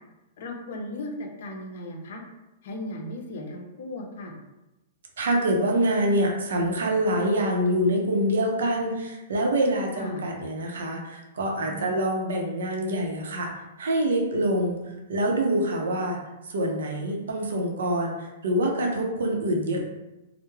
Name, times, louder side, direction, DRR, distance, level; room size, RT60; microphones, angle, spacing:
voice 1, 0.4-2.2 2.6-4.4 10.0-10.2 11.6-11.9, left 1 dB, 65° left, 2 dB, 0.5 m, -36 dB
voice 2, 5.2-13.5 13.8-14.8 15.1-16.2 16.5-19.8, right 1 dB, 85° right, 0 dB, 0.6 m, -25 dB
2.2 x 2.0 x 3.1 m, 1.0 s
hypercardioid pair, 145°, 0 cm